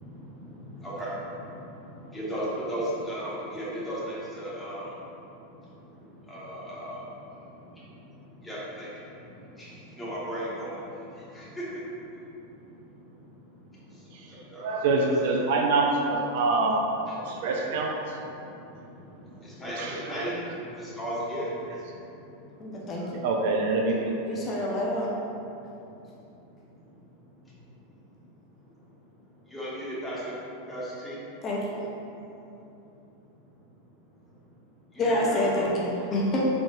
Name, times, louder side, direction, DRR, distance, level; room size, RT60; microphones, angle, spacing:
voice 1, 2.1-4.9 6.3-7.0 8.5-8.9 10.0-10.8 11.3-11.4 14.5-14.6 19.6-20.3 21.0-21.5 29.5-30.2 30.7-31.1 35.0-35.7 36.0-36.1, right 1 dB, 10° left, -9 dB, 1.3 m, -34 dB
voice 2, 14.6-18.0 19.8-20.1 23.2-24.1, right 3 dB, 60° right, 0 dB, 0.4 m, -25 dB
voice 3, 22.6-23.2 24.2-25.1 31.4-31.8 35.0-36.4, left 1 dB, 30° left, -4 dB, 0.5 m, -27 dB
3.6 x 3.5 x 2.5 m, 2.9 s
figure-of-eight pair, 90°, 0 cm